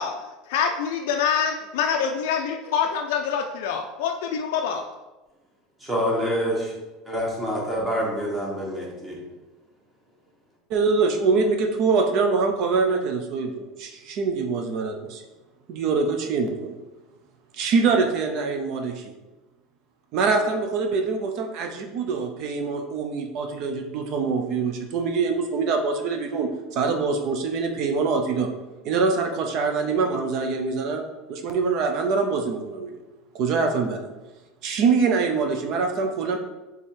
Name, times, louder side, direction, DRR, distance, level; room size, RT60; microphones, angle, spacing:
voice 1, 0.0-4.9, left 7 dB, 75° left, 4 dB, 0.4 m, -26 dB
voice 2, 5.9-6.6 7.4-9.1, equal, 10° right, -3 dB, 0.9 m, -26 dB
voice 3, 10.7-15.2 15.7-16.8 17.5-19.1 20.1-28.5 28.8-31.0 31.3-32.9 33.3-34.0 34.6-36.4, right 4 dB, 45° right, 4 dB, 0.4 m, -24 dB
3.5 x 3.4 x 4.2 m, 1.1 s
cardioid pair, 175°, 0 cm